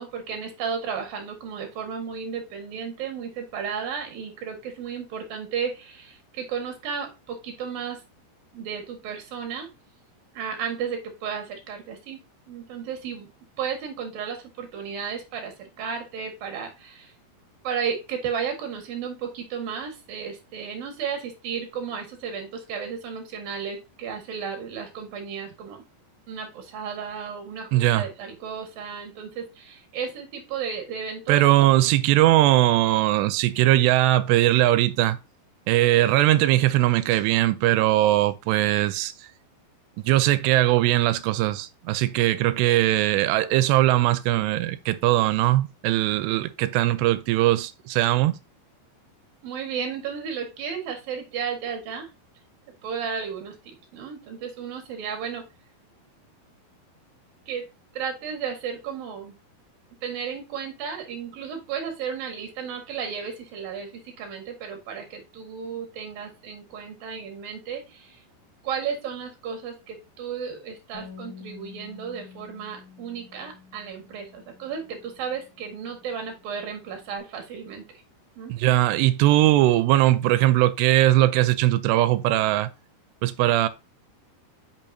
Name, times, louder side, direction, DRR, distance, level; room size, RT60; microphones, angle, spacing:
voice 1, 0.0-8.0 8.5-9.7 10.3-13.3 13.6-17.1 17.6-25.8 26.3-31.9 49.4-52.1 52.8-53.5 53.9-55.5 57.5-57.7 57.9-59.3 60.0-68.2 68.6-77.8 78.4-78.6, right 7 dB, 65° right, 3.3 m, -33 dB
voice 2, 27.7-28.1 31.3-35.2 35.7-39.1 40.0-48.4 78.5-82.7 83.2-83.7, right 15 dB, 85° right, 2.8 m, -20 dB
Bass guitar, 70.9-77.2, left 7 dB, 50° left, 1.6 m, -49 dB
8.8 x 5.9 x 2.7 m
omnidirectional pair, 4.8 m